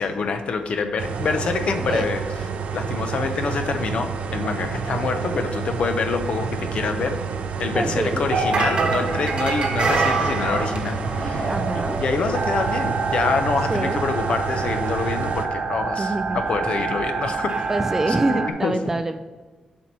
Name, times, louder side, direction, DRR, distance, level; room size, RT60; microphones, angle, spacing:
voice 1, 0.0-2.5 2.7-7.2 7.6-11.6 12.0-17.7 18.1-18.7, left 4 dB, 60° left, 7 dB, 0.8 m, -26 dB
sound 1, 1.0-15.5, right 6 dB, 80° right, 0.6 m, -29 dB
voice 2, 7.7-8.2 11.5-12.0 13.7-14.0 16.0-16.4 17.7-19.2, right 2 dB, 20° right, 9 dB, 0.4 m, -25 dB
sound 2, 8.3-18.5, right 4 dB, 45° right, 1.1 m, -26 dB
7.4 x 4.4 x 6.0 m, 1.3 s
wide cardioid pair, 145°, 2 cm